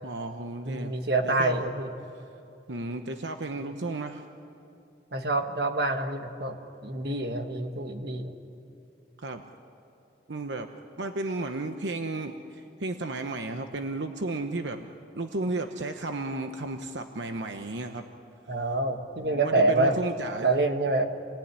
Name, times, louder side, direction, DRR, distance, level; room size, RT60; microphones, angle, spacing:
voice 1, 0.0-0.9 1.2-1.6 2.2-2.3 2.7-4.2 9.2-9.4 10.3-10.7 11.0-14.9 15.2-18.1 19.3-20.5, right 2 dB, 85° right, 6 dB, 1.0 m, -33 dB
voice 2, 0.6-1.9 5.1-6.6 6.8-8.4 18.5-20.0 20.4-21.1, right 2 dB, 60° right, 5 dB, 1.7 m, -26 dB
28.0 x 19.0 x 9.8 m, 2.7 s
head